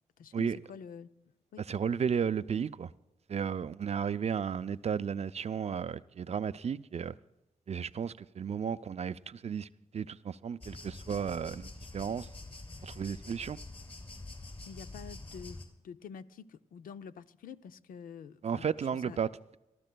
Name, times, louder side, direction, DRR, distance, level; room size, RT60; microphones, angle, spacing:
voice 1, 0.2-1.1 1.5-1.6 14.7-18.7 19.0-19.2, left 7 dB, 75° left, 0.5 m, -47 dB
voice 2, 1.7-2.9 3.3-7.1 7.7-9.7 9.9-12.3 12.8-13.6 18.4-19.3, right 7 dB, 50° right, 0.4 m, -33 dB
sound 1, 10.6-15.7, left 2 dB, 40° left, 4.7 m, -46 dB
26.0 x 14.0 x 2.3 m
supercardioid pair, 50°, 14 cm